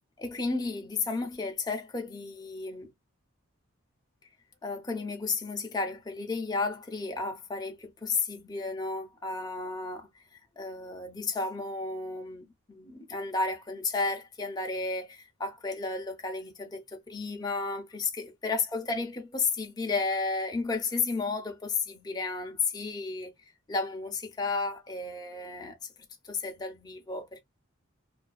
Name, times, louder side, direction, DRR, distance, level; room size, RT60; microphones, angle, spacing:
voice 1, 0.2-2.9 4.6-10.1 10.6-23.3 23.7-25.9 26.2-27.4, left 3 dB, 20° left, 0.5 m, -33 dB
2.4 x 2.3 x 2.2 m
head